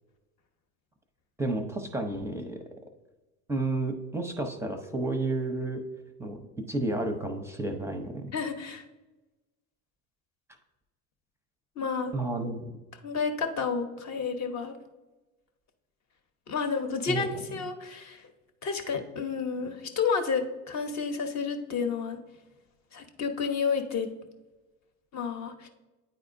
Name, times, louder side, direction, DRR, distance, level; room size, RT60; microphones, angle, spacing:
voice 1, 1.4-2.6 3.5-5.8 6.2-8.3 12.1-12.7 17.1-17.6, right 2 dB, 5° right, 5 dB, 0.6 m, -31 dB
voice 2, 8.3-8.8 11.8-12.1 13.0-14.8 16.5-18.3 18.6-22.2 22.9-24.1 25.1-25.7, left 5 dB, 40° left, 6 dB, 0.9 m, -30 dB
9.2 x 4.2 x 2.6 m, 1.1 s
supercardioid pair, 90°, 43 cm